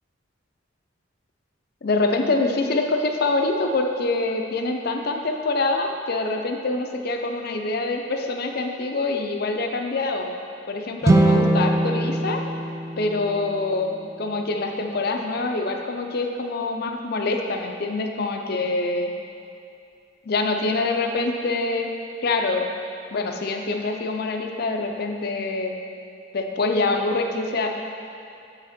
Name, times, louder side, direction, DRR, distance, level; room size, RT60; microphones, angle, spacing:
voice 1, 1.8-10.3 10.7-12.4 13.0-19.1 20.3-21.9 22.2-22.6 23.1-25.7 26.3-27.7, left 3 dB, 50° left, 3 dB, 0.6 m, -25 dB
sound 1, 11.0-14.3, right 1 dB, 15° right, 0.4 m, -22 dB
7.4 x 4.9 x 4.3 m, 2.5 s
head